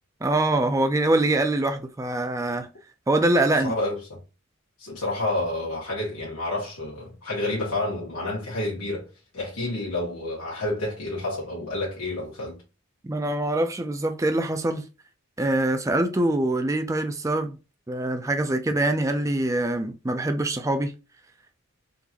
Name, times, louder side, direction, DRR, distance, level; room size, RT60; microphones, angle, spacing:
voice 1, 0.2-2.7 3.1-3.7 13.0-14.9 15.4-17.6 17.9-20.9, right 2 dB, 15° right, 0.4 m, -24 dB
voice 2, 3.6-4.2 4.8-9.1 9.3-12.6, left 2 dB, 90° left, 1.5 m, -29 dB
3.8 x 2.5 x 2.9 m
head